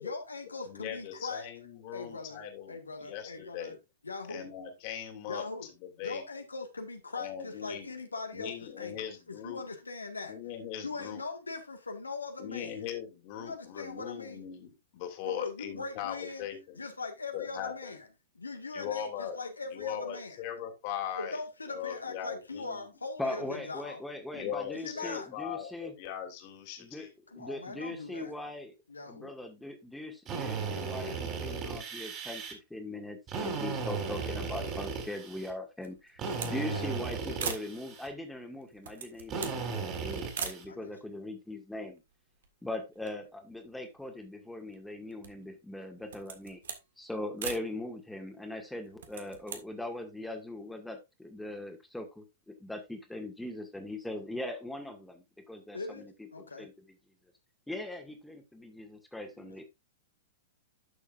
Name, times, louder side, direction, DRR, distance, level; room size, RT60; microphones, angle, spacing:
voice 1, 0.0-1.5 1.9-3.8 4.0-4.5 5.3-5.7 6.0-10.3 10.8-12.8 13.4-14.5 15.3-16.5 16.8-18.1 18.4-20.4 21.2-24.0 24.7-25.3 27.3-28.3 28.9-29.3 36.5-36.9 40.7-40.9 55.7-56.7 59.4-59.6, left 3 dB, 80° left, 1.7 m, -41 dB
voice 2, 0.7-3.8 4.3-6.2 7.1-7.9 8.3-9.6 10.2-11.2 12.4-16.9 17.3-17.9 18.7-19.4 19.7-21.4 21.7-22.9 24.3-27.1, left 9 dB, 40° left, 2.8 m, -40 dB
voice 3, 23.2-25.9 26.8-27.1 27.4-28.7 29.0-42.0 42.6-46.6 47.0-56.1 56.6-56.7 57.7-59.6, left 1 dB, 5° left, 2.0 m, -40 dB
Drill, 30.3-32.5 33.3-35.5 36.2-38.1 39.3-40.7, right 5 dB, 30° right, 3.3 m, -36 dB
sound 1, 35.8-36.6 36.9-37.0 37.4-37.7 38.6-39.6 40.3-40.6 41.4-41.5 41.7-42.6 42.9-44.2 44.7-45.5 46.0-46.9 47.4-47.7 48.9-49.6, right 7 dB, 60° right, 1.7 m, -40 dB
12.0 x 7.0 x 2.5 m
figure-of-eight pair, 105°, 0 cm